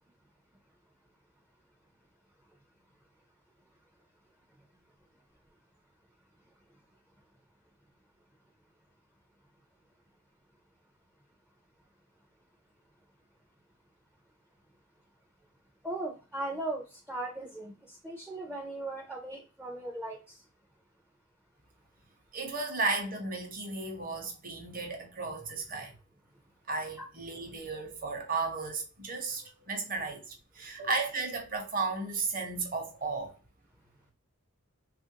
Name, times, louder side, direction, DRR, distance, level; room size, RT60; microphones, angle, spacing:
voice 1, 15.8-20.5 27.0-27.1, right 2 dB, 5° right, 0.4 m, -38 dB
voice 2, 22.3-25.9 26.7-33.3, right 3 dB, 40° right, 0.8 m, -34 dB
3.0 x 2.4 x 2.7 m
head